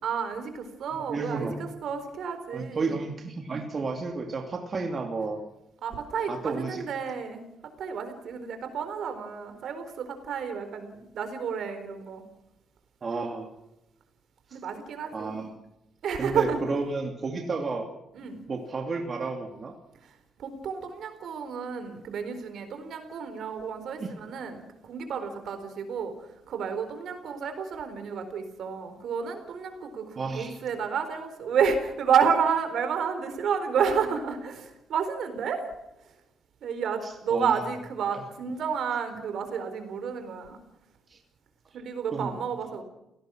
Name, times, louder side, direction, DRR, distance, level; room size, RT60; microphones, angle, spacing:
voice 1, 0.0-3.0 5.8-7.5 7.8-12.2 14.5-15.4 16.0-16.6 18.1-18.4 20.0-35.7 36.0-36.1 36.6-40.6 41.7-42.8, right 6 dB, 65° right, 8 dB, 4.1 m, -30 dB
voice 2, 0.9-1.6 2.5-5.4 6.3-6.8 13.0-13.5 14.5-14.6 15.1-15.5 16.2-17.9 18.5-19.7 24.0-24.1 30.2-30.6 37.0-37.5 41.1-41.2 42.1-42.3, right 3 dB, 35° right, 3 dB, 2.7 m, -32 dB
29.0 x 18.0 x 6.3 m, 0.90 s
cardioid pair, 130°, 0 cm